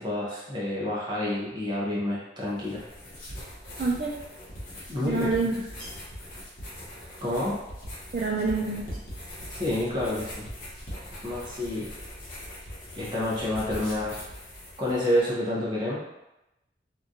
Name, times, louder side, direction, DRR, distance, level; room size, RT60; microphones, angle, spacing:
voice 1, 0.0-2.8 4.9-5.3 7.2-7.6 9.5-10.5 11.2-11.9 13.0-14.2 14.8-16.0, left 1 dB, 25° right, -7 dB, 0.9 m, -28 dB
sound 1, 2.5-15.2, equal, 50° left, 0.9 m, -41 dB
voice 2, 3.8-4.1 5.0-5.9 8.1-9.0, right 3 dB, 50° right, -5 dB, 0.4 m, -27 dB
2.9 x 2.4 x 2.6 m, 0.91 s
head